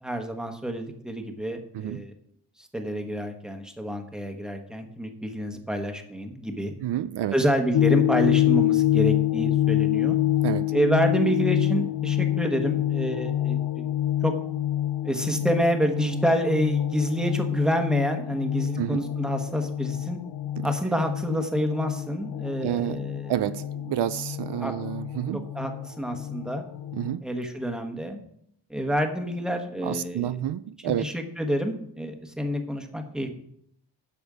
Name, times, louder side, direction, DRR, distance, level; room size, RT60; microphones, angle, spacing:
voice 1, 0.0-2.1 2.6-6.7 7.3-10.2 10.7-13.9 14.2-14.3 15.0-20.2 20.6-23.3 24.6-24.7 25.3-26.6 27.2-28.2 28.7-30.4 30.8-33.3, equal, ahead, 1.2 m, -28 dB
voice 2, 1.7-2.1 6.8-7.4 10.4-10.7 18.8-19.0 20.6-20.7 22.6-23.0 23.3-25.4 26.9-27.2 29.8-31.1, right 11 dB, 75° right, 0.5 m, -29 dB
sound 1, 7.7-27.2, left 13 dB, 85° left, 0.7 m, -26 dB
10.5 x 7.0 x 4.9 m
wide cardioid pair, 145°, 41 cm